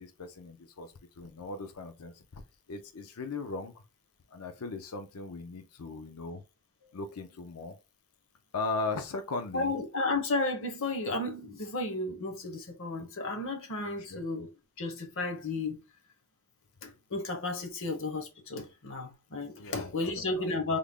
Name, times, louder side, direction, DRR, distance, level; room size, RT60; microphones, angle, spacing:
voice 1, 0.0-2.4 2.7-3.8 4.3-6.4 6.8-7.8 8.5-9.7 14.0-14.2 19.6-20.5, left 3 dB, 85° left, 0.6 m, -38 dB
voice 2, 9.5-14.5 14.8-15.8 16.8-20.8, left 2 dB, 60° left, 0.9 m, -33 dB
3.6 x 2.1 x 3.5 m
head